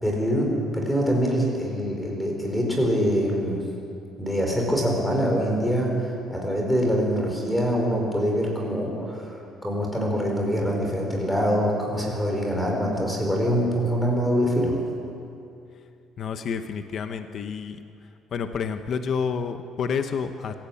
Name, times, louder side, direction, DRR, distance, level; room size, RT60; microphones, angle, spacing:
voice 1, 0.0-3.6 4.2-9.4 9.6-14.8, equal, 5° left, 0 dB, 4.5 m, -24 dB
voice 2, 16.2-17.8 18.3-20.5, left 6 dB, 35° left, 8 dB, 1.0 m, -29 dB
26.0 x 16.5 x 8.6 m, 2.6 s
cardioid pair, 180°, 0 cm